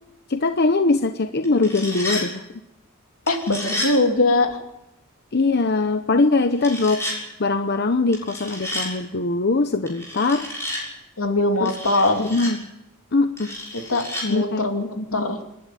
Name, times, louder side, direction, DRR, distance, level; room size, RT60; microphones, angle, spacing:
voice 1, 0.3-2.4 5.3-7.0 7.4-10.5 11.6-12.7 13.1-13.5 14.3-14.7 15.0-15.3, left 3 dB, 50° left, 8 dB, 0.9 m, -22 dB
sound 1, 1.4-2.2 3.3-3.9 6.6-7.2 8.1-8.9 9.9-10.8 11.6-12.5 13.4-14.2, left 1 dB, 15° left, 7.1 m, -31 dB
voice 2, 3.3-4.6 11.2-12.3 13.9-14.9 15.1-15.4, left 2 dB, 75° left, 4 dB, 2.7 m, -21 dB
27.5 x 11.5 x 9.4 m, 0.93 s
head